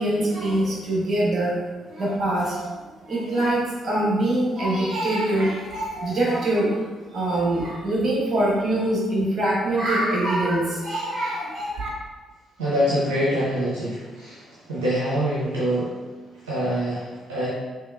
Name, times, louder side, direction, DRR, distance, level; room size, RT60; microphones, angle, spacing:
voice 1, 0.0-1.5 1.8-6.8 7.1-11.9, right 1 dB, 45° right, -5 dB, 1.4 m, -24 dB
voice 2, 12.6-15.9 16.4-17.5, equal, 75° right, -9 dB, 0.9 m, -25 dB
5.5 x 3.2 x 2.5 m, 1.3 s
figure-of-eight pair, 40°, 0 cm